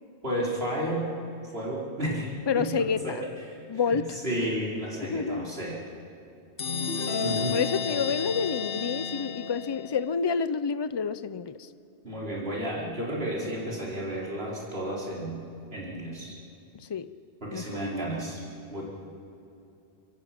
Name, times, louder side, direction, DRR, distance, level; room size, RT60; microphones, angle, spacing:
voice 1, 0.2-1.1 1.4-3.6 3.9-5.8 7.2-7.6 12.0-15.4 15.7-16.4 17.4-18.4 18.7-18.8, right 1 dB, 65° right, -5 dB, 4.9 m, -32 dB
voice 2, 2.5-3.2 3.7-4.2 5.0-5.5 7.1-11.7 16.7-17.1 17.5-17.8, left 6 dB, 30° left, 14 dB, 0.5 m, -29 dB
sound 1, 6.6-10.1, left 5 dB, 60° left, 1.2 m, -32 dB
25.0 x 22.5 x 6.1 m, 2.8 s
omnidirectional pair, 1.1 m